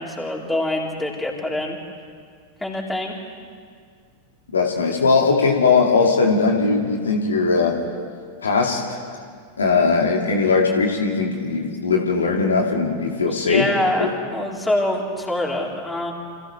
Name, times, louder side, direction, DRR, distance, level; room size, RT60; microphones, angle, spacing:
voice 1, 0.0-1.8 2.6-3.1 13.3-16.1, left 1 dB, 5° left, -2 dB, 3.9 m, -25 dB
voice 2, 4.5-7.8 8.4-9.0 9.6-13.7 14.0-14.1, left 4 dB, 70° left, 1 dB, 2.3 m, -19 dB
29.5 x 26.5 x 3.4 m, 2.1 s
figure-of-eight pair, 90°, 0 cm